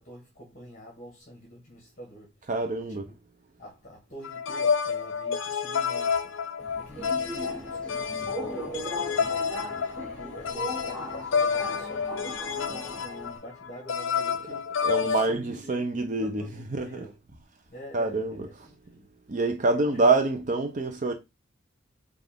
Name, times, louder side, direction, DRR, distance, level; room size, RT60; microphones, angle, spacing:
voice 1, 0.0-2.3 2.9-3.0 3.6-6.3 6.8-9.5 9.9-17.2 17.7-19.1 19.7-20.4, equal, 40° left, 1.6 m, -47 dB
voice 2, 2.5-3.0 14.8-16.4 16.7-17.1 17.9-18.5 19.3-21.1, right 3 dB, 40° right, 0.6 m, -26 dB
sound 1, 4.2-15.3, left 6 dB, 85° left, 0.5 m, -29 dB
Subway metro underground, 6.6-13.4, equal, 5° left, 2.0 m, -38 dB
5.7 x 2.4 x 3.5 m
head